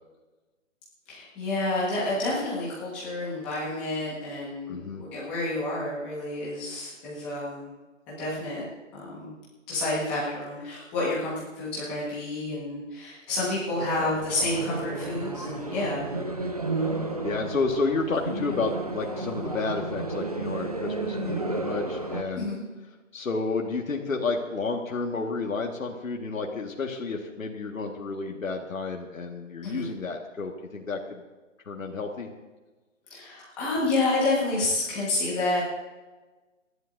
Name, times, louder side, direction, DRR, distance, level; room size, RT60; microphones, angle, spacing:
voice 1, 1.1-7.7 8.1-8.6 8.9-9.3 9.7-16.1 22.4-22.6 29.6-29.9 33.1-35.6, left 2 dB, 5° left, -8 dB, 1.4 m, -29 dB
voice 2, 4.7-5.0 14.0-14.1 17.2-22.5 23.1-31.2 31.7-32.3, left 3 dB, 80° left, 1 dB, 1.8 m, -31 dB
sound 1, 13.8-22.2, right 2 dB, 30° right, 0.6 m, -32 dB
28.0 x 11.0 x 2.6 m, 1.2 s
hypercardioid pair, 180°, 39 cm